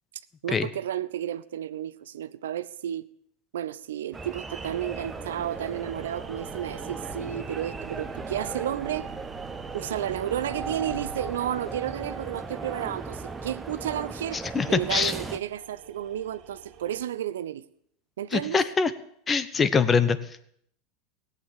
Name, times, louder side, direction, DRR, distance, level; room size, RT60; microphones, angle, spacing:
voice 1, 0.4-3.0 3.5-9.1 9.7-17.6 18.2-18.6, right 11 dB, 75° right, 0.6 m, -32 dB
sound 1, 4.1-15.4, right 3 dB, 15° right, 1.1 m, -37 dB
sound 2, 4.5-17.0, right 7 dB, 45° right, 2.5 m, -46 dB
voice 2, 14.3-15.1 18.3-18.9 19.3-20.4, left 5 dB, 25° left, 1.0 m, -24 dB
17.0 x 8.4 x 7.3 m
hypercardioid pair, 90°, 0 cm